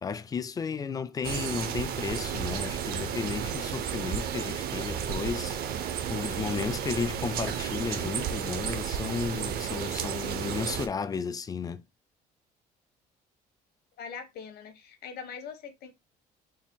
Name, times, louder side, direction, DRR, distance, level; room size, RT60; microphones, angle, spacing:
voice 1, 0.0-5.6 6.1-11.8, left 6 dB, 20° left, 0.4 m, -33 dB
sound 1, 1.2-10.9, right 8 dB, 65° right, 0.6 m, -32 dB
voice 2, 14.0-15.9, left 6 dB, 65° left, 1.0 m, -42 dB
4.1 x 2.2 x 3.7 m
cardioid pair, 110°, 17 cm